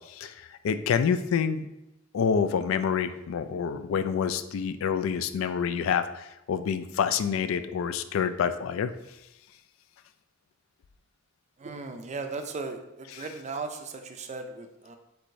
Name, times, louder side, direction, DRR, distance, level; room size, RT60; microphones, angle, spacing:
voice 1, 0.1-1.7 2.1-8.9 13.1-13.3, left 7 dB, 70° left, 11 dB, 0.3 m, -27 dB
voice 2, 11.6-15.0, right 4 dB, 35° right, 6 dB, 0.4 m, -37 dB
4.6 x 4.1 x 2.6 m, 0.90 s
head